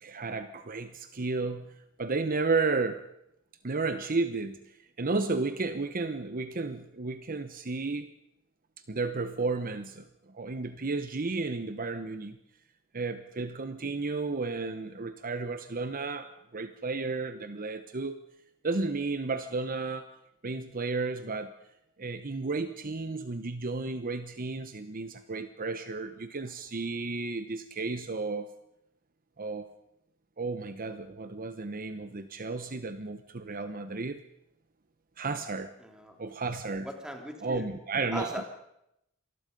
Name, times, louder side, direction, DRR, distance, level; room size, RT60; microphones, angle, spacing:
voice 1, 0.0-1.7 2.0-3.0 3.6-8.1 8.9-12.4 12.9-18.2 18.6-20.1 20.4-21.5 22.0-28.5 29.4-29.7 30.4-34.2 35.2-35.7 36.2-36.9 37.4-38.4, right 3 dB, 45° right, 10 dB, 0.9 m, -33 dB
voice 2, 35.8-36.1 36.8-37.7 38.1-38.4, equal, 5° right, 3 dB, 3.1 m, -38 dB
26.5 x 20.0 x 5.3 m, 0.81 s
head